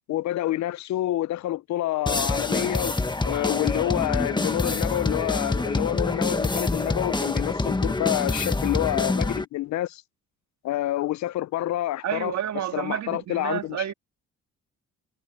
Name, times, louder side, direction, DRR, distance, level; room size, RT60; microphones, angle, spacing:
voice 1, 0.1-3.0 3.2-10.0 10.6-13.9, left 14 dB, 70° left, 0.5 m, -28 dB
sound 1, 2.1-9.4, left 2 dB, 15° left, 1.5 m, -26 dB
voice 2, 12.0-13.9, right 10 dB, 65° right, 2.2 m, -30 dB
cardioid pair, 90°, 30 cm